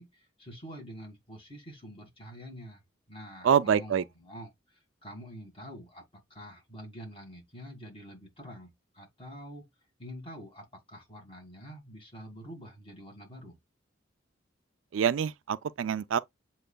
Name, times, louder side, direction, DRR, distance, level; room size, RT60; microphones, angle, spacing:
voice 1, 0.0-2.8 3.1-9.6 10.0-13.6, equal, 30° left, 2.3 m, -46 dB
voice 2, 3.4-4.0 14.9-16.2, right 8 dB, 85° right, 0.4 m, -26 dB
7.8 x 3.0 x 2.2 m
head